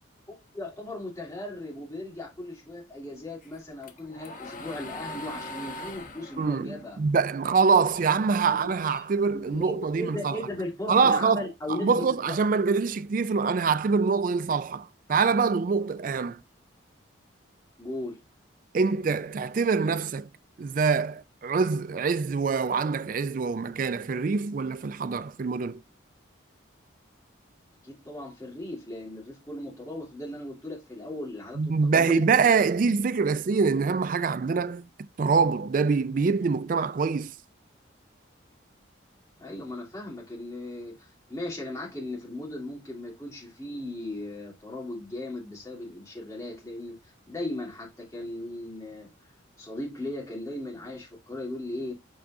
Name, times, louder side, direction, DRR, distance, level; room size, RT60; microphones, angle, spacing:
voice 1, 0.5-7.0 8.4-8.7 9.3-12.4 17.8-18.2 27.8-32.2 39.4-49.1 49.6-51.9, left 1 dB, 15° left, 3.0 m, -37 dB
sound 1, 3.4-7.9 8.3-9.9, left 2 dB, 40° left, 1.1 m, -41 dB
voice 2, 6.4-10.4 10.9-16.4 18.7-20.3 20.6-25.8 31.6-37.3, right 5 dB, 45° right, 0.3 m, -25 dB
8.1 x 4.8 x 2.7 m
head